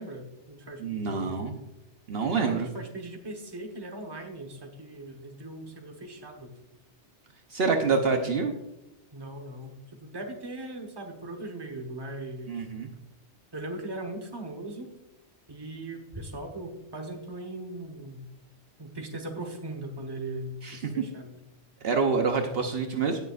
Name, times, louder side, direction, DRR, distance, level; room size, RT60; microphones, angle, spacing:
voice 1, 0.0-1.5 2.4-6.5 9.1-12.6 13.5-14.9 15.5-18.3 18.8-21.4, right 1 dB, 20° right, 3 dB, 1.2 m, -39 dB
voice 2, 0.8-1.5 2.1-2.7 7.5-8.5 12.5-12.9 20.6-21.0 21.8-23.2, right 4 dB, 60° right, 4 dB, 1.0 m, -27 dB
17.5 x 6.9 x 2.5 m, 0.90 s
omnidirectional pair, 1.1 m